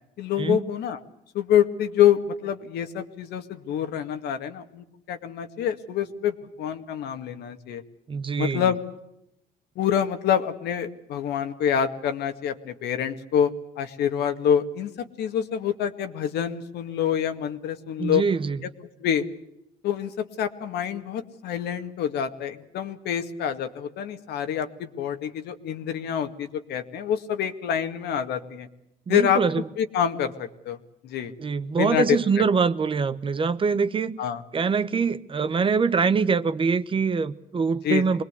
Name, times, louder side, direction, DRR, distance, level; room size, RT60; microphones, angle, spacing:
voice 1, 0.2-1.0 1.3-7.8 8.4-8.8 9.8-14.9 15.2-18.2 19.0-19.3 19.8-28.7 29.1-29.4 29.8-30.8 31.0-31.3 31.8-32.4 34.2-34.4 37.8-38.0, left 9 dB, 75° left, 2.1 m, -26 dB
voice 2, 8.1-8.7 18.0-18.6 29.1-29.6 31.4-34.2 34.5-38.2, right 5 dB, 30° right, 1.1 m, -24 dB
25.0 x 21.0 x 8.3 m
cardioid pair, 110°, 17 cm